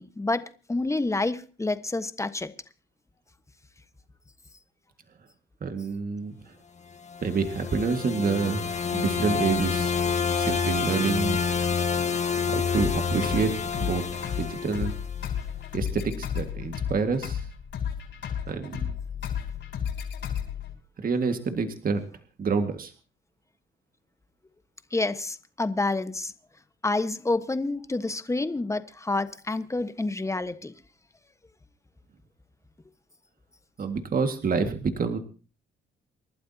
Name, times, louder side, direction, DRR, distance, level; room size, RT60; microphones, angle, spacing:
voice 1, 0.0-2.5 24.9-26.3 26.8-30.7, left 2 dB, 15° left, 11 dB, 1.3 m, -28 dB
voice 2, 5.6-6.5 7.2-8.7 8.9-9.9 10.3-11.4 12.5-14.1 14.4-14.9 15.7-17.5 18.5-18.9 21.0-22.0 22.4-22.9 33.8-35.2, right 5 dB, 45° right, 7 dB, 1.9 m, -28 dB
Startup Shutdown, 7.1-15.3, left 6 dB, 35° left, 1.5 m, -28 dB
sound 1, 12.7-20.7, left 8 dB, 65° left, 5.7 m, -33 dB
28.5 x 12.0 x 2.9 m, 0.35 s
cardioid pair, 90°, 20 cm